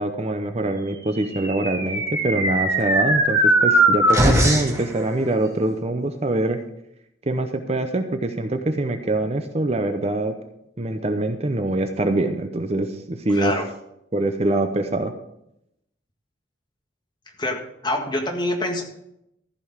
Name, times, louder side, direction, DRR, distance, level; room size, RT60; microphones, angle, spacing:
voice 1, 0.0-6.6 7.3-10.3 10.8-13.5 14.1-15.1, right 2 dB, 35° right, 7 dB, 0.7 m, -24 dB
sound 1, 1.2-4.8, right 1 dB, 15° right, 2.2 m, -19 dB
voice 2, 13.3-13.6 17.4-18.8, left 1 dB, 25° left, 2 dB, 1.8 m, -25 dB
14.5 x 5.3 x 6.6 m, 0.80 s
head